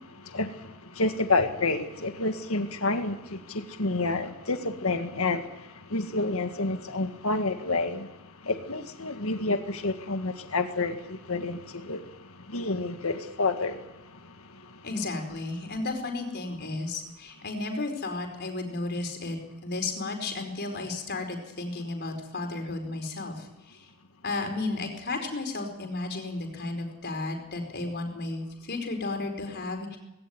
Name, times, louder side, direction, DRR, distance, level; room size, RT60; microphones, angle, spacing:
voice 1, 0.3-8.1 8.4-12.0 12.5-13.8, left 3 dB, 75° left, 1.8 m, -29 dB
voice 2, 14.8-19.4 19.6-23.9 24.2-30.0, left 2 dB, 50° left, 4.7 m, -33 dB
19.5 x 17.5 x 9.5 m
head